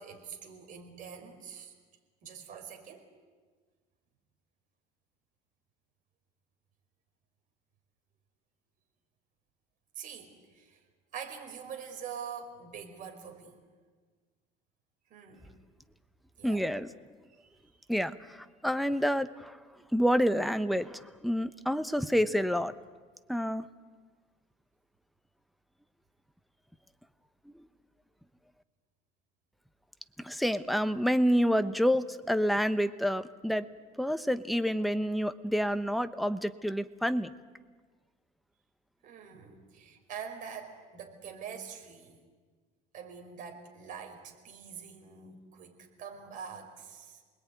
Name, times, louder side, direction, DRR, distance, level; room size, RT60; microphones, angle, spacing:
voice 1, 0.0-1.7 2.2-3.1 10.0-10.8 11.1-13.6 15.1-15.5 16.4-16.7 17.3-17.9 39.0-42.2 42.9-47.2, right 7 dB, 50° right, 4 dB, 5.2 m, -45 dB
voice 2, 16.4-16.9 17.9-18.4 18.6-19.5 19.9-22.7 23.3-23.6 30.2-33.7 34.0-37.3, equal, ahead, 10 dB, 0.9 m, -28 dB
29.0 x 20.5 x 9.4 m, 1.5 s
cardioid pair, 130°, 18 cm